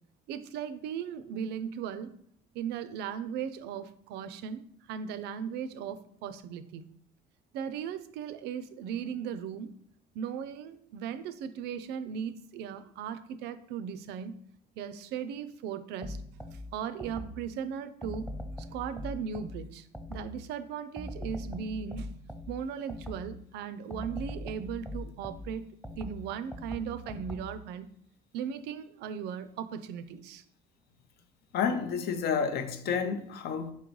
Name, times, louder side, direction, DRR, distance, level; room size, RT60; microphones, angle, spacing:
voice 1, 0.3-2.2 2.5-6.9 7.5-9.7 10.1-14.4 14.8-16.2 16.7-18.3 18.7-22.1 22.5-27.9 28.3-30.4, right 7 dB, 80° right, 0.4 m, -37 dB
sound 1, 16.0-17.5 18.0-20.5 21.0-23.4 23.9-27.7, left 1 dB, ahead, 0.3 m, -41 dB
voice 2, 31.5-33.7, left 6 dB, 70° left, 0.6 m, -30 dB
4.2 x 3.8 x 3.1 m
cardioid pair, 110°, 17 cm